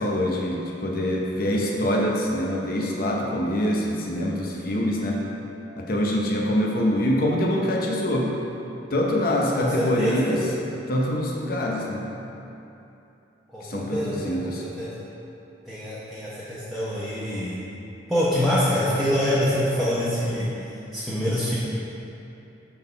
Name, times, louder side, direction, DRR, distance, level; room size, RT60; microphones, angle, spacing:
voice 1, 0.0-5.3 5.8-8.4 8.9-10.4 10.9-12.1 13.6-14.6, equal, 50° left, -2 dB, 0.7 m, -25 dB
voice 2, 9.6-10.4 13.5-14.9 15.6-17.6 18.1-21.5, equal, ahead, -11 dB, 0.9 m, -26 dB
6.1 x 3.7 x 5.6 m, 2.9 s
head